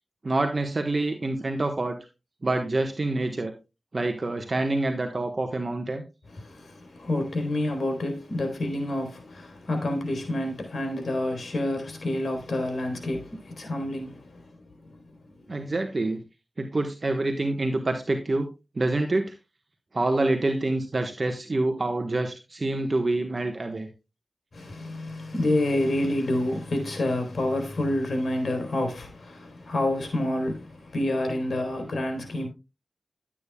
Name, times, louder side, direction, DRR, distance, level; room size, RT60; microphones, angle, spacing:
voice 1, 0.2-2.0 2.4-3.5 3.9-6.0 15.5-16.2 16.6-18.5 18.7-19.3 19.9-23.9, right 2 dB, 55° right, 1.2 m, -26 dB
voice 2, 6.3-14.6 14.9-15.0 24.5-32.5, left 1 dB, 75° left, 3.6 m, -28 dB
12.0 x 8.7 x 2.3 m
cardioid pair, 45°, 0 cm